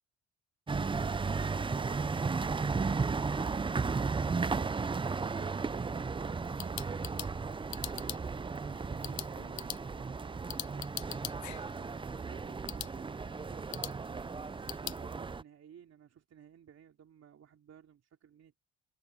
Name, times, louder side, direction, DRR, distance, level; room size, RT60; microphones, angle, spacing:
sound 1, 0.7-15.4, right 4 dB, 15° right, 0.5 m, -35 dB
voice 1, 3.7-7.0 8.3-14.3 14.8-18.6, right 9 dB, 60° right, 3.2 m, -56 dB
sound 2, 6.3-15.0, left 13 dB, 70° left, 0.9 m, -45 dB
cardioid pair, 90°, 30 cm